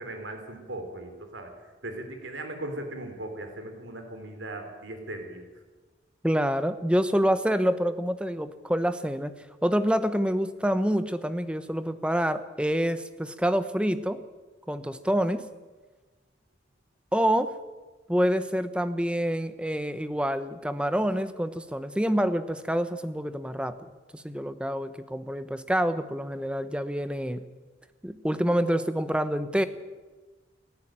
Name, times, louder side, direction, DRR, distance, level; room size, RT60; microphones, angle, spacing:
voice 1, 0.0-1.5 1.8-5.5, right 1 dB, 90° right, 5 dB, 3.4 m, -38 dB
voice 2, 6.2-9.3 9.6-14.2 14.7-15.5 17.1-17.5 18.1-23.8 24.1-27.5 28.0-29.6, equal, 5° right, 11 dB, 0.9 m, -27 dB
29.0 x 10.5 x 9.0 m, 1.3 s
head